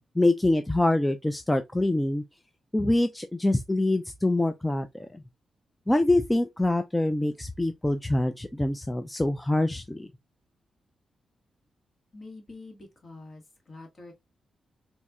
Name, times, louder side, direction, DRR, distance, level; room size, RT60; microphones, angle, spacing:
voice 1, 0.2-2.2 2.7-5.2 5.9-10.1, left 1 dB, 10° left, 0.3 m, -25 dB
voice 2, 12.1-14.1, left 3 dB, 40° left, 1.7 m, -46 dB
4.2 x 2.7 x 2.4 m
cardioid pair, 95°, 0 cm